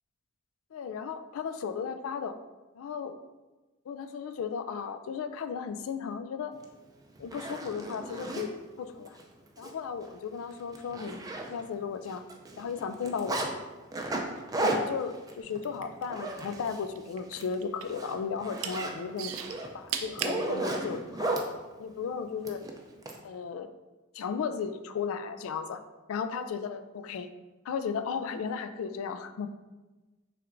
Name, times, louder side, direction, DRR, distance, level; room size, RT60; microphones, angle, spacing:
voice 1, 0.7-2.4 2.8-3.1 3.9-6.5 7.2-9.2 9.6-11.2 11.5-12.2 12.6-13.6 14.6-19.3 19.7-21.4 21.8-22.6 23.2-23.7 24.1-25.8 26.1-27.3 27.7-29.5, left 6 dB, 85° left, 10 dB, 0.3 m, -35 dB
Zipper (clothing), 6.6-6.7 7.2-8.5 9.1-9.2 9.6-9.7 10.0-10.2 10.5-11.8 12.1-13.5 13.9-16.9 17.2-17.5 17.8-21.5 22.4-23.2, right 2 dB, 20° right, 0.4 m, -34 dB
sound 1, 15.5-16.7 17.0-18.0 18.4-18.7 19.2-20.4 21.1-21.2, right 8 dB, 85° right, 0.4 m, -35 dB
5.6 x 3.4 x 2.5 m, 1.2 s
head